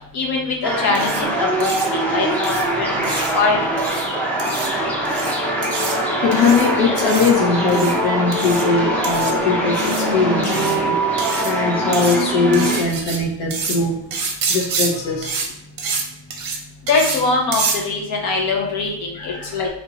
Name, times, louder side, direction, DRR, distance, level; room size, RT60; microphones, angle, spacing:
voice 1, 0.1-1.8 2.1-3.1 3.3-3.6 16.9-19.7, left 3 dB, 55° left, 0 dB, 1.0 m, -22 dB
sound 1, 0.6-12.8, right 1 dB, 5° left, 0.4 m, -22 dB
sound 2, 0.9-1.2 1.6-1.9 2.4-2.6 3.0-3.3 3.8-4.0 4.4-4.7 5.0-5.3 5.6-6.0 6.3-6.7 7.0-7.3 7.7-7.9 8.3-8.6 9.0-9.3 9.8-10.0 10.4-10.8 11.2-11.5 11.9-12.2 12.5-13.2 13.5-13.8 14.1-14.9 15.2-15.5 15.8-16.0 16.3-16.6 16.9-17.2 17.5-17.8, right 4 dB, 50° right, 0.7 m, -26 dB
voice 2, 6.2-11.0 11.4-14.0 14.5-15.4 19.1-19.6, left 4 dB, 80° left, 0 dB, 1.1 m, -20 dB
3.0 x 2.8 x 3.5 m, 0.77 s
cardioid pair, 165°, 45 cm